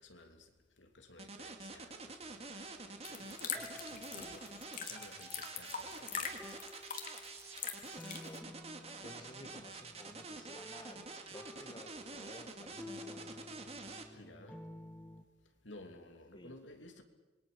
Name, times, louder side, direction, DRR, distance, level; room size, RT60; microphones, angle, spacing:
voice 1, 0.0-4.5 4.9-6.7 14.1-14.7 15.6-17.0, left 2 dB, 85° left, 3.1 m, -56 dB
sound 1, 1.2-14.0, right 3 dB, 35° right, 2.4 m, -47 dB
sound 2, 3.0-8.4, left 7 dB, 45° left, 2.7 m, -44 dB
sound 3, 3.5-15.2, left 1 dB, 10° left, 1.7 m, -54 dB
voice 2, 8.1-8.4 9.0-13.7 16.3-16.6, left 1 dB, 25° left, 1.9 m, -54 dB
27.0 x 22.5 x 7.0 m
head